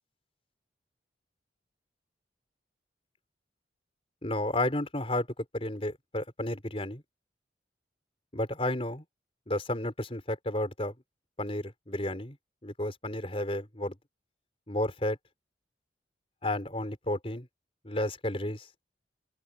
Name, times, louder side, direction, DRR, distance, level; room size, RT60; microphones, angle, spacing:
voice 1, 4.2-5.3 5.5-7.0 8.3-9.0 9.5-10.9 11.4-12.4 12.6-14.0 14.7-15.2 16.4-17.5 17.8-18.7, left 1 dB, 30° left, 4.2 m, -32 dB
open air
head